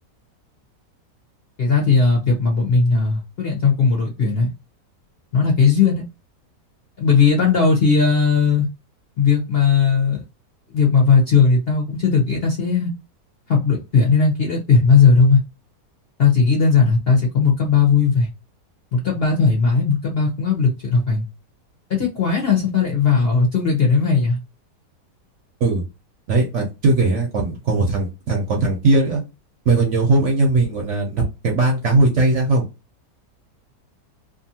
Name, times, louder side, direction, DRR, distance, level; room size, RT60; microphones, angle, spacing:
voice 1, 1.6-4.5 5.3-6.0 7.0-8.7 9.2-10.2 10.7-12.9 13.5-15.4 16.2-18.3 18.9-21.3 21.9-24.4, left 5 dB, 50° left, -1 dB, 0.7 m, -17 dB
voice 2, 26.3-29.2 29.7-32.6, right 2 dB, 60° right, 0 dB, 0.8 m, -19 dB
2.7 x 2.5 x 2.7 m, 0.27 s
omnidirectional pair, 1.8 m